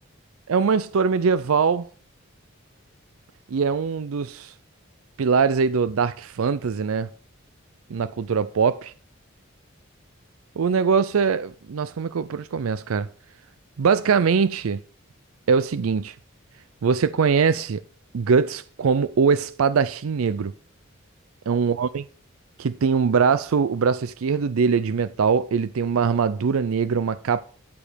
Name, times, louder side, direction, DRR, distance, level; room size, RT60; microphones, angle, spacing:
voice 1, 0.5-1.9 3.5-4.5 5.2-7.1 7.9-8.9 10.6-13.1 13.8-14.8 15.5-16.1 16.8-17.8 18.1-20.5 21.5-22.0 22.6-27.4, right 5 dB, 90° right, 0.5 m, -22 dB
13.0 x 5.1 x 5.1 m
head